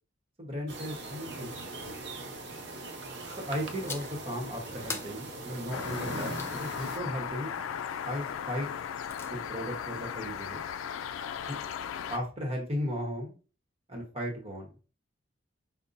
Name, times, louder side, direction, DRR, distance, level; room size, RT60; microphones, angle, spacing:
voice 1, 0.4-1.6 3.5-6.3 6.6-7.5 8.0-8.7 9.2-10.6 11.4-11.6 12.1-13.3 13.9-14.7, equal, 30° right, 0 dB, 1.0 m, -36 dB
sound 1, 0.7-7.0, right 2 dB, 60° right, 0.6 m, -40 dB
sound 2, 3.8-4.3 4.9-6.6 8.7-9.3, left 4 dB, 15° left, 0.3 m, -42 dB
sound 3, 5.7-12.2, left 8 dB, 85° left, 0.3 m, -37 dB
5.3 x 2.1 x 2.5 m, 0.34 s
head